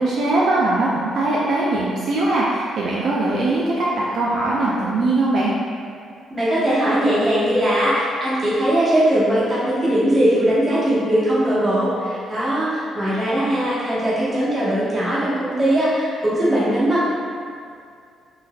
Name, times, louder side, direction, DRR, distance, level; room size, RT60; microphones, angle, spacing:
voice 1, 0.0-5.5, right 2 dB, 65° right, -6 dB, 0.4 m, -21 dB
voice 2, 6.3-17.1, right 1 dB, 25° right, -10 dB, 1.2 m, -20 dB
3.8 x 2.6 x 2.3 m, 2.2 s
cardioid pair, 90°, 0 cm